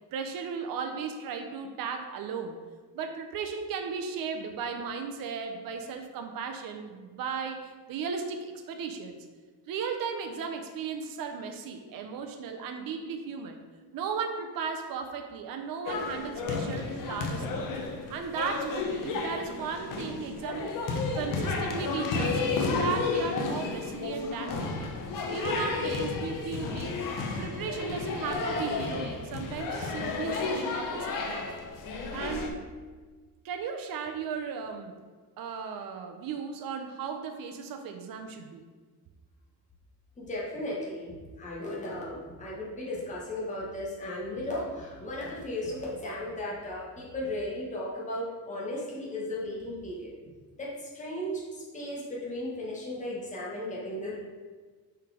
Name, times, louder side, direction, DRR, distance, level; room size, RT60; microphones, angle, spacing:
voice 1, 0.1-2.6 2.9-9.2 9.7-13.6 13.9-17.6 18.1-20.7 21.1-25.0 25.3-26.9 27.4-31.5 32.1-32.7 33.4-35.0 35.4-38.6, right 6 dB, 65° right, 5 dB, 0.7 m, -36 dB
sound 1, 15.8-32.5, left 4 dB, 60° left, 0.9 m, -32 dB
voice 2, 40.2-50.1 50.6-54.2, left 1 dB, 20° left, -5 dB, 1.4 m, -36 dB
5.7 x 4.6 x 4.9 m, 1.4 s
cardioid pair, 165°, 38 cm